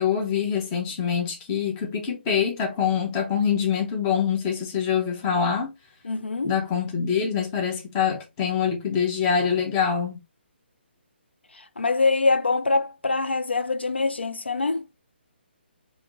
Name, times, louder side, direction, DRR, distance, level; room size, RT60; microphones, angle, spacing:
voice 1, 0.0-5.7 6.4-10.2, left 7 dB, 20° left, 1.1 m, -25 dB
voice 2, 6.0-6.5 11.5-14.9, left 3 dB, 70° left, 0.6 m, -24 dB
4.9 x 2.8 x 3.0 m
figure-of-eight pair, 140°, 6 cm